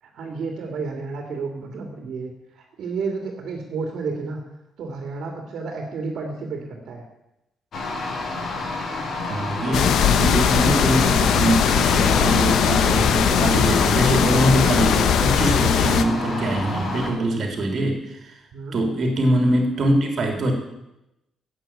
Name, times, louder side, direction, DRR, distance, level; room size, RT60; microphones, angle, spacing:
voice 1, 0.0-4.4 4.8-7.0 9.6-10.2 18.5-18.8, right 4 dB, 65° right, 3 dB, 2.7 m, -31 dB
sound 1, 7.7-17.1, left 2 dB, 45° left, 2.8 m, -29 dB
voice 2, 9.3-18.3 18.7-20.5, right 1 dB, 40° right, 4 dB, 3.4 m, -23 dB
sound 2, 9.7-16.0, left 8 dB, 70° left, 1.1 m, -19 dB
15.5 x 8.7 x 9.0 m, 0.91 s
cardioid pair, 160°, 0 cm